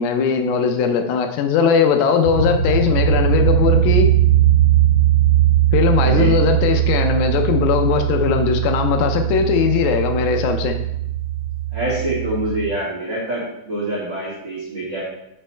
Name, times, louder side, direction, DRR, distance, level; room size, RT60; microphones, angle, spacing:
voice 1, 0.0-4.1 5.7-10.8, left 6 dB, 80° left, 6 dB, 2.3 m, -19 dB
sound 1, 2.2-12.7, right 11 dB, 75° right, 1.8 m, -19 dB
voice 2, 6.0-6.3 11.7-15.0, right 1 dB, 40° right, -8 dB, 1.9 m, -25 dB
6.1 x 5.3 x 4.3 m, 0.81 s
omnidirectional pair, 4.3 m